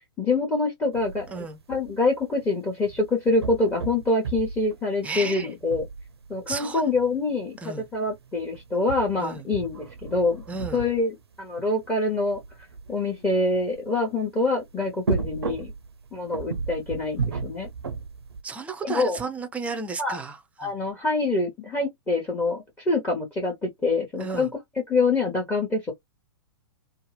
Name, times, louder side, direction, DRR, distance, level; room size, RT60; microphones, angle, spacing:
voice 1, 0.2-5.8 6.3-10.4 10.7-11.1 11.4-12.4 12.9-15.7 16.1-17.7 18.8-19.2 20.0-20.2 20.6-24.5 24.9-25.9, left 2 dB, 10° left, 0.9 m, -25 dB
sound 1, 0.9-14.3 14.6-18.4, right 5 dB, 75° right, 0.5 m, -35 dB
voice 2, 5.0-5.5 6.5-6.8 7.6-7.8 9.2-9.5 10.5-10.9 18.4-20.7 24.2-24.5, right 4 dB, 10° right, 0.5 m, -33 dB
2.7 x 2.0 x 3.2 m
figure-of-eight pair, 110°, 14 cm